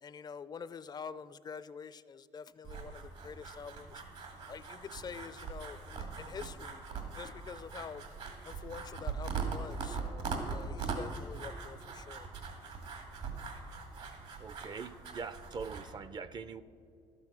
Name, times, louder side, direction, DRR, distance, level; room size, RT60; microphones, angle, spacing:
voice 1, 0.0-4.0 4.5-6.8 7.2-8.0 8.4-12.3, left 6 dB, 40° left, 16 dB, 0.4 m, -46 dB
sound 1, 2.6-15.8, right 5 dB, 70° right, 2.1 m, -41 dB
voice 2, 14.4-16.6, right 5 dB, 40° right, 15 dB, 0.5 m, -42 dB
12.0 x 7.8 x 6.0 m, 2.7 s
supercardioid pair, 80°, 11 cm